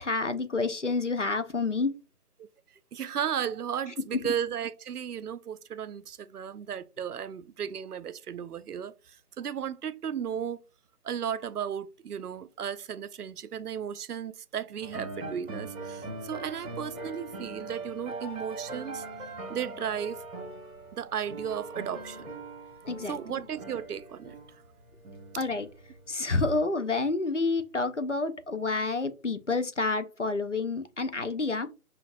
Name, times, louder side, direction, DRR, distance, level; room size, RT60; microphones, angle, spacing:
voice 1, 0.0-1.9 4.1-4.3 22.9-23.2 25.4-25.7 26.1-31.7, left 3 dB, 55° left, 0.5 m, -29 dB
voice 2, 2.9-10.6 11.0-19.0 19.5-20.2 20.9-22.3 23.1-24.4, right 8 dB, 80° right, 0.5 m, -35 dB
sound 1, 14.8-26.1, right 2 dB, 60° right, 1.6 m, -41 dB
5.9 x 2.5 x 2.5 m
figure-of-eight pair, 180°, 45 cm